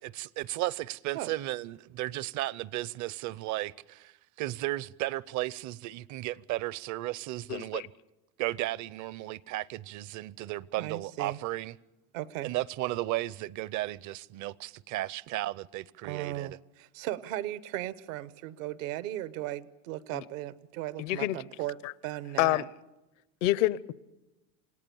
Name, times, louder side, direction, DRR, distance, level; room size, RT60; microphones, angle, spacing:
voice 1, 0.0-4.1 4.4-7.9 8.4-11.8 12.4-16.6, right 16 dB, 45° right, 0.7 m, -34 dB
voice 2, 7.5-7.8 20.1-20.2 21.0-21.4 21.8-21.9 22.4-22.7 23.4-23.9, left 16 dB, 70° left, 0.8 m, -27 dB
voice 3, 10.8-11.4 12.1-12.5 16.0-22.7, right 14 dB, 75° right, 1.1 m, -37 dB
28.0 x 18.0 x 7.1 m
supercardioid pair, 110°, 40 cm